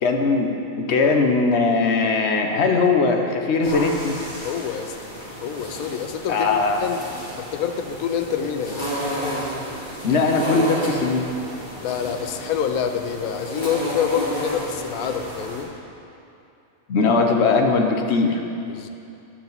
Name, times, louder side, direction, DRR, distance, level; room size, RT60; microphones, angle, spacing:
voice 1, 0.0-0.5 0.8-4.2 6.3-6.9 10.0-11.3 16.9-18.4, left 4 dB, 55° left, 3 dB, 1.0 m, -20 dB
sound 1, 3.6-15.6, equal, 35° left, 1.9 m, -32 dB
voice 2, 4.4-4.9 5.4-7.0 7.4-8.9 11.8-15.7 18.7-18.9, left 8 dB, 90° left, 7 dB, 1.1 m, -27 dB
11.5 x 7.2 x 4.0 m, 2.7 s
omnidirectional pair, 1.5 m